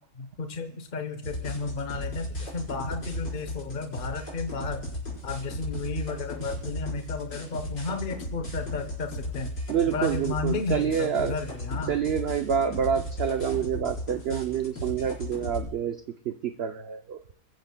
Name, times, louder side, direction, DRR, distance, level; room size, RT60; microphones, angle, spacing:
voice 1, 0.1-4.9 5.2-9.5 9.9-11.9, left 3 dB, 45° left, 8 dB, 0.7 m, -33 dB
sound 1, 1.2-15.7, left 1 dB, 90° left, 5.1 m, -36 dB
voice 2, 9.7-11.4 11.9-17.2, right 8 dB, 60° right, 8 dB, 0.6 m, -28 dB
24.0 x 14.5 x 2.2 m, 0.64 s
omnidirectional pair, 1.7 m